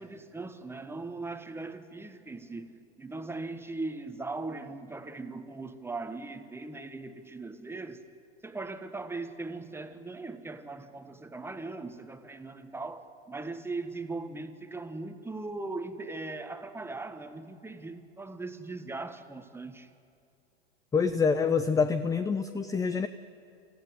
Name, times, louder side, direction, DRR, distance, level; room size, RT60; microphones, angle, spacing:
voice 1, 0.0-8.0 8.4-19.9, right 3 dB, 5° right, 1.4 m, -39 dB
voice 2, 20.9-23.1, left 5 dB, 10° left, 0.5 m, -26 dB
26.5 x 15.0 x 9.8 m
hypercardioid pair, 95°, 32 cm